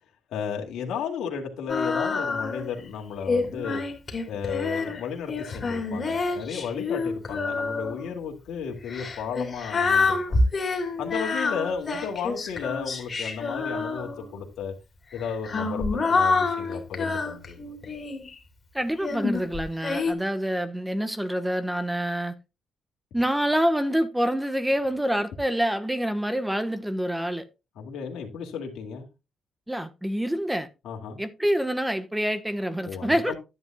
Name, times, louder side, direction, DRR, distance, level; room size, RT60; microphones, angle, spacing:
voice 1, 0.3-3.8 4.3-10.5 11.0-14.7 15.1-17.6 27.8-29.1 30.8-31.2 32.9-33.3, left 6 dB, 85° left, 2.4 m, -34 dB
Female singing, 1.7-2.7 3.3-8.1 8.9-14.4 15.2-18.3 19.0-20.1, left 3 dB, 40° left, 3.0 m, -27 dB
voice 2, 18.7-22.3 23.1-27.4 29.7-30.7 31.2-33.3, equal, 5° right, 1.3 m, -26 dB
11.0 x 9.6 x 2.4 m
cardioid pair, 85°, 0 cm